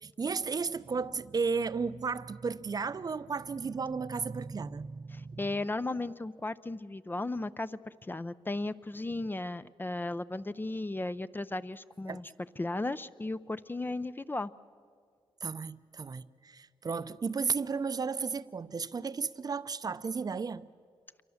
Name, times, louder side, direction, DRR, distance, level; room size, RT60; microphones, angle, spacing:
voice 1, 0.0-5.4 12.1-12.2 15.4-20.7, right 5 dB, 40° right, 0.7 m, -34 dB
voice 2, 5.1-12.3 12.6-14.5, left 2 dB, 20° left, 0.5 m, -35 dB
27.0 x 23.5 x 7.2 m
cardioid pair, 85°, 10 cm